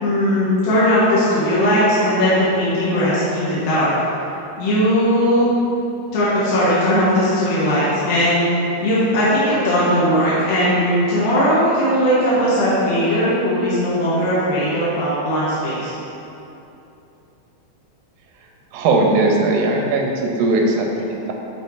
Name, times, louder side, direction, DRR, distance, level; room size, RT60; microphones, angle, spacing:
voice 1, 0.0-3.9 4.6-5.5 6.1-8.5 8.8-15.9, equal, 70° left, -10 dB, 2.9 m, -18 dB
voice 2, 18.7-21.3, right 2 dB, 75° right, 0 dB, 1.8 m, -18 dB
10.5 x 4.1 x 4.5 m, 2.9 s
omnidirectional pair, 4.6 m